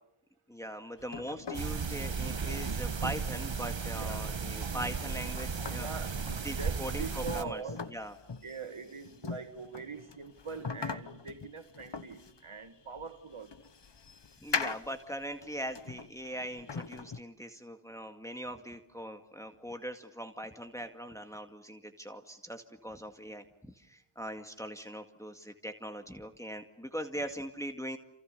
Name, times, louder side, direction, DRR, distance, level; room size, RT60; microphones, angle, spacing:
voice 1, 0.5-5.9 6.4-7.6 7.9-8.1 14.4-28.0, equal, 5° left, 2.0 m, -41 dB
sound 1, 1.0-17.2, left 5 dB, 60° left, 1.2 m, -42 dB
sound 2, 1.5-7.4, right 5 dB, 70° right, 1.3 m, -35 dB
voice 2, 5.8-7.8 8.4-13.5, right 5 dB, 90° right, 2.0 m, -43 dB
28.5 x 28.0 x 6.7 m
wide cardioid pair, 45°, 48 cm